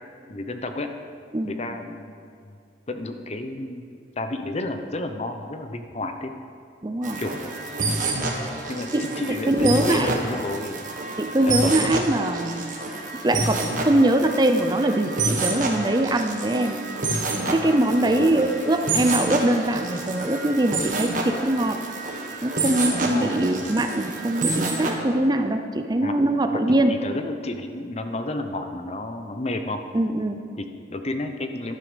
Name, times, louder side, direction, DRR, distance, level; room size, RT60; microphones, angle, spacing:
voice 1, 0.3-0.9 1.4-2.6 2.9-6.3 7.2-7.4 8.7-10.8 11.5-11.9 18.0-18.4 23.0-23.7 26.0-26.2 26.5-29.8 30.5-31.8, left 2 dB, 35° left, 7 dB, 0.8 m, -31 dB
voice 2, 6.8-7.2 8.9-10.1 11.2-12.6 13.2-16.8 17.1-17.2 17.5-21.8 22.4-26.9 29.9-30.4, right 1 dB, 25° right, 7 dB, 0.6 m, -22 dB
sound 1, 7.0-24.9, right 2 dB, 45° right, 1.6 m, -28 dB
13.0 x 11.0 x 5.1 m, 2.3 s
head